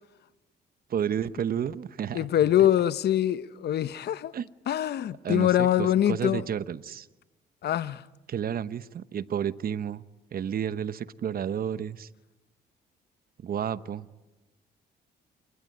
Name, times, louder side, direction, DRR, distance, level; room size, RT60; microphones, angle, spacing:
voice 1, 0.9-2.3 4.3-4.5 5.2-7.1 8.3-10.0 10.3-12.1 13.4-14.1, right 8 dB, 55° right, 1.0 m, -31 dB
voice 2, 2.1-4.3 4.7-6.4 7.6-8.0, left 11 dB, 65° left, 0.9 m, -24 dB
28.0 x 22.5 x 9.4 m
supercardioid pair, 75°, 18 cm